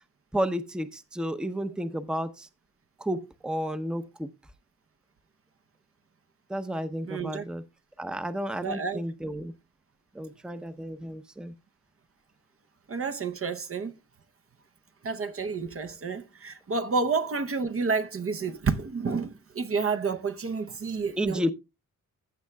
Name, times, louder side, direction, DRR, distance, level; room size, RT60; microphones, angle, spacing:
voice 1, 0.3-2.5 3.0-4.3 6.5-7.6 8.0-9.5 10.1-11.5 21.2-21.5, equal, 5° right, 0.7 m, -32 dB
voice 2, 7.0-7.5 8.6-9.0 12.9-14.0 15.0-21.5, right 4 dB, 45° right, 0.8 m, -30 dB
15.0 x 7.2 x 2.3 m
cardioid pair, 90°, 32 cm